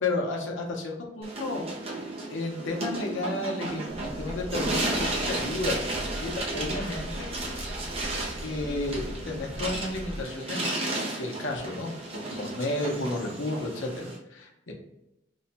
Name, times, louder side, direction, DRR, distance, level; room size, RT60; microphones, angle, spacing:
voice 1, 0.0-2.0 2.3-7.3 8.4-10.7 11.2-14.7, left 2 dB, 90° left, 0 dB, 0.8 m, -32 dB
sound 1, 1.2-14.2, right 2 dB, 30° right, 0.6 m, -34 dB
sound 2, 3.9-10.2, equal, 20° left, 0.5 m, -39 dB
3.2 x 2.2 x 3.9 m, 0.87 s
head